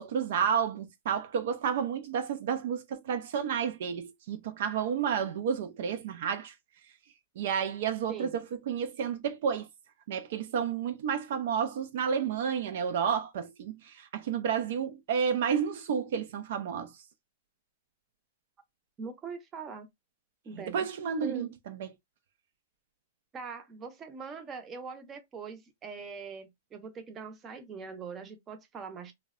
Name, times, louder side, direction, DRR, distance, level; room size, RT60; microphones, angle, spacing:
voice 1, 0.0-6.5 7.4-9.7 10.1-16.9 20.6-21.9, right 7 dB, 65° right, 0.3 m, -31 dB
voice 2, 19.0-19.9 20.4-20.9 21.2-21.5 23.3-29.1, right 5 dB, 25° right, 0.6 m, -42 dB
2.6 x 2.1 x 2.4 m
hypercardioid pair, 130°, 0 cm